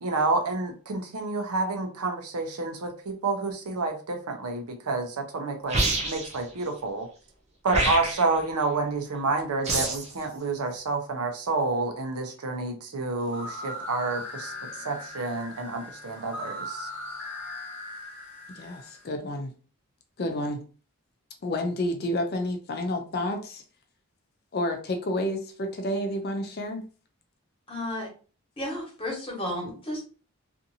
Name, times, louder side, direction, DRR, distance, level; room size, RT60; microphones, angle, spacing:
voice 1, 0.0-7.1 7.6-14.5 14.8-16.9, right 3 dB, 85° right, 4 dB, 0.7 m, -29 dB
sound 1, 5.7-6.4 7.7-8.4 9.6-10.1, right 2 dB, 30° right, 0.6 m, -26 dB
sound 2, 13.2-19.0, left 1 dB, 5° left, 1.1 m, -39 dB
voice 2, 18.5-19.5 20.2-20.6 21.4-23.6 24.5-26.9, left 1 dB, 45° left, 5 dB, 0.4 m, -30 dB
voice 3, 27.7-28.1 28.6-30.0, left 1 dB, 25° left, -2 dB, 1.1 m, -32 dB
2.6 x 2.5 x 2.7 m, 0.37 s
head